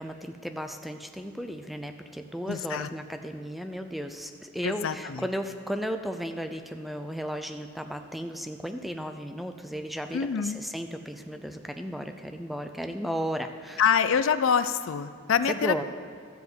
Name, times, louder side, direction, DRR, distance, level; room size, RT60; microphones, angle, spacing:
voice 1, 0.0-13.8 15.5-15.8, equal, ahead, 7 dB, 0.4 m, -35 dB
voice 2, 2.5-2.9 4.6-5.2 10.1-10.6 13.8-15.8, left 7 dB, 65° left, 13 dB, 0.4 m, -25 dB
13.0 x 5.0 x 7.8 m, 2.1 s
head